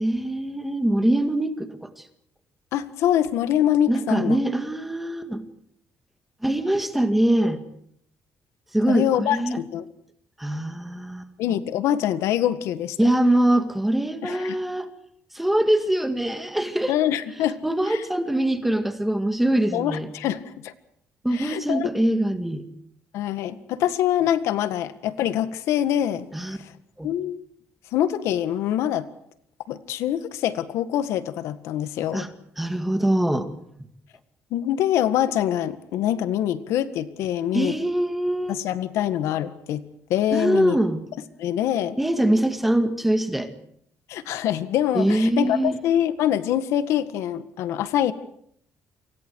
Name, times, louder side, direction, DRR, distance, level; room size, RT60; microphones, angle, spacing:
voice 1, 0.0-1.9 3.9-5.4 6.4-7.6 8.7-9.6 10.4-11.3 13.0-14.9 15.3-17.0 17.6-20.1 21.2-22.7 26.3-26.6 27.0-27.1 32.1-32.3 32.6-33.5 37.5-38.6 40.3-41.0 42.0-43.5 44.9-45.8, right 1 dB, 5° right, 8 dB, 2.0 m, -23 dB
voice 2, 2.7-4.4 8.9-9.9 11.4-13.1 14.2-14.6 16.9-17.6 17.9-18.0 19.7-20.7 21.3-21.9 23.1-26.7 27.0-27.4 27.9-29.1 29.7-32.3 34.5-37.8 38.5-40.8 41.4-42.0 44.1-48.1, left 11 dB, 90° left, 12 dB, 1.8 m, -24 dB
29.5 x 25.5 x 4.8 m, 0.70 s
cardioid pair, 180°, 5 cm